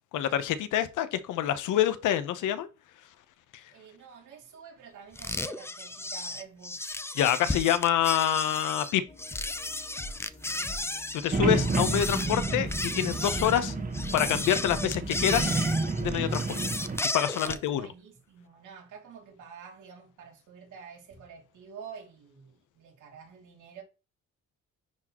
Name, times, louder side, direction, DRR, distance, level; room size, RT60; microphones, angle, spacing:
voice 1, 0.1-2.7 7.2-9.0 11.2-13.7 14.1-15.6 16.0-16.6 17.1-17.9, left 11 dB, 85° left, 0.9 m, -26 dB
voice 2, 3.7-6.9 10.4-10.9 17.4-23.8, right 7 dB, 80° right, 2.6 m, -48 dB
sound 1, 5.2-17.7, left 2 dB, 10° left, 0.5 m, -34 dB
sound 2, 9.1-16.6, left 1 dB, 25° left, 2.1 m, -44 dB
sound 3, 11.3-17.0, right 3 dB, 30° right, 1.3 m, -30 dB
10.5 x 4.1 x 3.0 m
cardioid pair, 90°, 30 cm